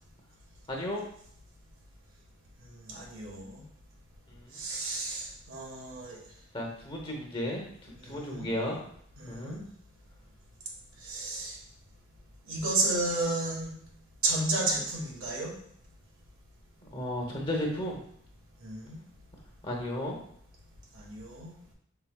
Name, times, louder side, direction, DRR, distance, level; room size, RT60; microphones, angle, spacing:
voice 1, 0.7-1.0 4.3-4.6 6.5-8.8 9.3-9.6 16.9-18.0 19.6-20.2, left 1 dB, 25° left, 0 dB, 0.9 m, -34 dB
voice 2, 2.8-3.6 4.5-6.2 8.0-8.5 9.2-9.6 11.0-11.6 12.5-13.7 14.2-15.5 18.6-19.0 20.9-21.5, right 2 dB, 75° right, -2 dB, 1.4 m, -32 dB
5.7 x 3.8 x 2.3 m, 0.65 s
head